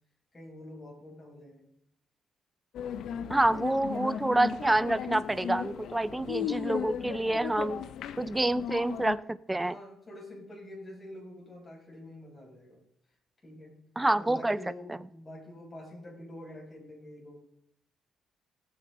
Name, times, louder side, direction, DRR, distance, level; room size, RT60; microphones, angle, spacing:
voice 1, 0.3-1.7 3.1-4.1 6.0-6.4 9.6-12.8 13.4-13.8 14.1-17.4, left 1 dB, 25° left, -2 dB, 5.8 m, -47 dB
sound 1, 2.7-9.2, left 9 dB, 75° left, 0.6 m, -36 dB
voice 2, 3.3-7.8 8.2-9.8 14.0-14.6 14.9-15.0, right 2 dB, 10° right, 17 dB, 0.5 m, -27 dB
16.5 x 8.6 x 3.8 m, 0.77 s
cardioid pair, 90°, 0 cm